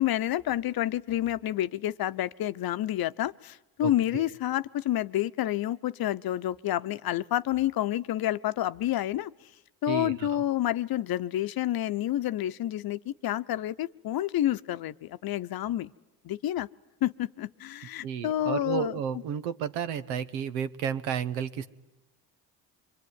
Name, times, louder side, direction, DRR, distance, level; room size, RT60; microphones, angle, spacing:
voice 1, 0.0-9.3 9.8-15.9 16.2-16.7 17.0-19.0, left 13 dB, 55° left, 12 dB, 0.9 m, -29 dB
voice 2, 3.8-4.3 9.9-10.4 18.0-21.7, right 8 dB, 80° right, 12 dB, 1.3 m, -32 dB
25.0 x 23.5 x 9.5 m, 1.0 s
supercardioid pair, 65°, 44 cm